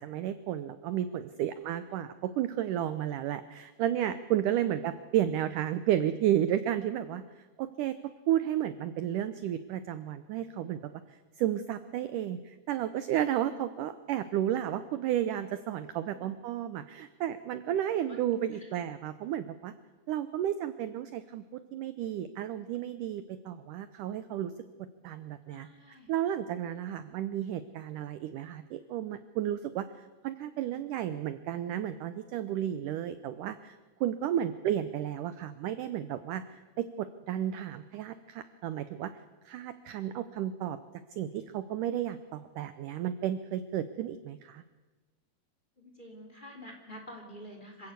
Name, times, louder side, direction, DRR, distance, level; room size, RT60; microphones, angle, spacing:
voice 1, 0.0-8.0 8.3-10.8 11.4-19.7 20.1-24.5 25.0-29.9 30.2-39.1 39.5-40.8 41.2-44.6, right 11 dB, 80° right, 12 dB, 1.9 m, -32 dB
voice 2, 1.3-1.6 4.7-4.9 16.0-16.3 17.9-18.2 18.5-18.7 25.5-26.1 45.8-47.9, equal, 15° left, 3 dB, 2.9 m, -49 dB
26.0 x 16.0 x 8.1 m, 1.3 s
omnidirectional pair, 4.6 m